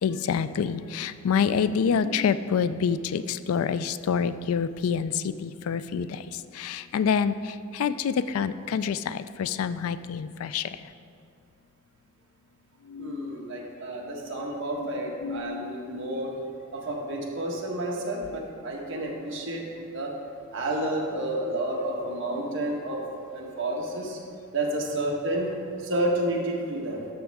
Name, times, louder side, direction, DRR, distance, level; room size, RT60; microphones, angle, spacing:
voice 1, 0.0-10.9 12.8-13.4 15.2-16.0, left 6 dB, 85° left, 14 dB, 0.3 m, -27 dB
voice 2, 13.0-16.3 16.7-19.6 19.9-20.1 20.5-23.0 23.3-24.2 24.5-27.0, right 1 dB, 60° right, -1 dB, 1.4 m, -30 dB
13.0 x 6.4 x 3.5 m, 2.4 s
head